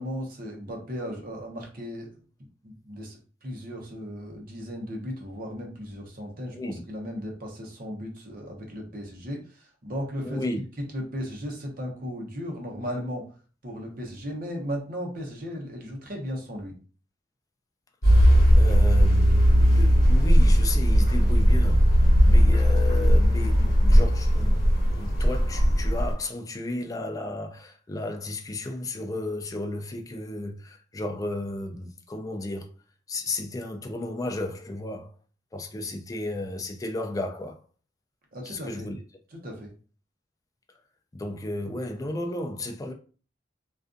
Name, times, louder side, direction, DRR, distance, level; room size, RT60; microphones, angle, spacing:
voice 1, 0.0-2.1 2.6-10.4 10.8-13.3 13.6-16.7 38.3-38.9 39.3-39.7, equal, 50° right, 0.8 m, -36 dB
voice 2, 10.2-10.6 18.6-24.6 24.9-32.7 33.1-35.1 35.5-37.6 38.4-39.0 41.1-42.9, left 2 dB, 20° left, 0.3 m, -33 dB
sound 1, 18.0-26.1, equal, 55° left, 1.3 m, -18 dB
2.4 x 2.3 x 2.5 m
head